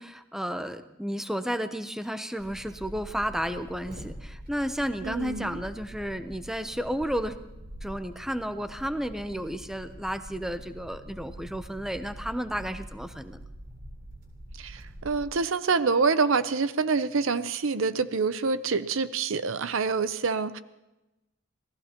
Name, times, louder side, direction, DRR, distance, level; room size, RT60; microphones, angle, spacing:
voice 1, 0.0-7.4 7.8-13.4, equal, ahead, 9 dB, 0.7 m, -32 dB
sound 1, 2.4-15.3, right 1 dB, 45° right, 3.8 m, -44 dB
voice 2, 5.0-5.6 14.6-20.6, right 4 dB, 70° right, 13 dB, 0.7 m, -26 dB
27.5 x 18.0 x 2.9 m, 0.99 s
head